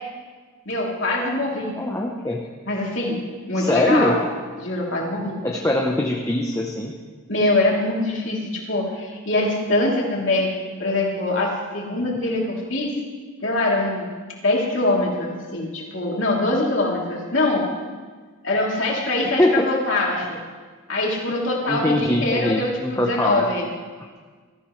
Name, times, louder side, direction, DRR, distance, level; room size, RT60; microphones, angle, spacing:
voice 1, 0.6-1.7 2.7-3.2 3.5-4.2 4.6-5.4 7.3-10.5 10.8-12.9 13.4-14.1 14.4-17.6 18.4-20.4 20.9-23.7, left 2 dB, 60° left, -3 dB, 3.2 m, -23 dB
voice 2, 1.8-2.4 3.5-4.1 5.4-6.9 19.4-19.7 21.7-23.4, left 1 dB, 15° left, 0 dB, 0.9 m, -22 dB
20.5 x 14.0 x 3.3 m, 1.5 s
head